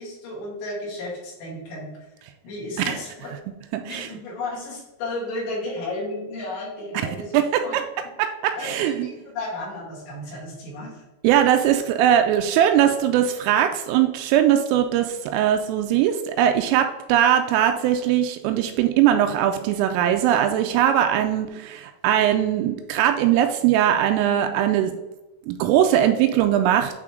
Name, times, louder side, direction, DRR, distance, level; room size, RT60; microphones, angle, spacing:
voice 1, 0.0-1.9 2.4-3.3 3.8-7.3 7.6-7.8 8.5-11.0, left 2 dB, 65° left, -6 dB, 4.8 m, -33 dB
voice 2, 3.7-4.1 7.3-7.8 8.2-9.1 11.2-24.9 25.5-26.9, right 10 dB, 85° right, 6 dB, 3.0 m, -20 dB
9.9 x 4.2 x 3.7 m, 1.1 s
omnidirectional pair, 6.0 m